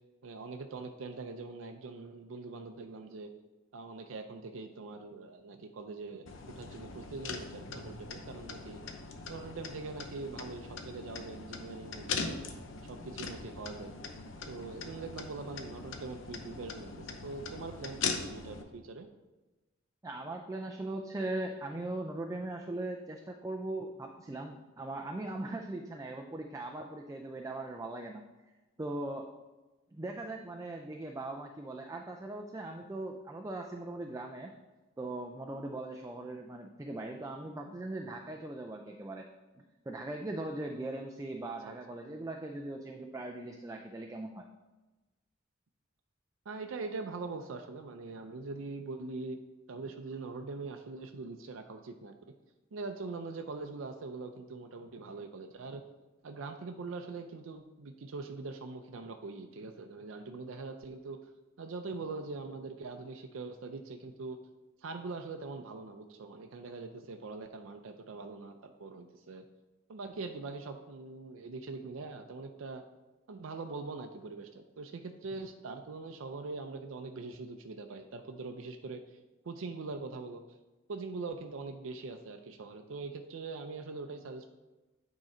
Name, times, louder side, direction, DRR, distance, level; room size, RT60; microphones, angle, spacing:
voice 1, 0.2-3.3 3.7-8.8 9.3-12.4 12.9-13.9 14.5-19.1 24.3-24.4 41.4-41.8 46.5-49.4 49.7-52.1 52.7-55.8 56.2-61.2 61.6-64.4 64.8-69.4 69.9-72.8 73.3-79.2 79.4-80.4 80.9-84.5, right 3 dB, 80° right, 5 dB, 0.5 m, -42 dB
sound 1, 6.3-18.6, left 4 dB, 75° left, 0.7 m, -41 dB
voice 2, 20.0-28.2 28.8-29.3 29.9-34.5 35.0-39.3 39.9-44.4, right 2 dB, 15° right, 2 dB, 0.4 m, -39 dB
9.0 x 3.7 x 4.3 m, 1.1 s
head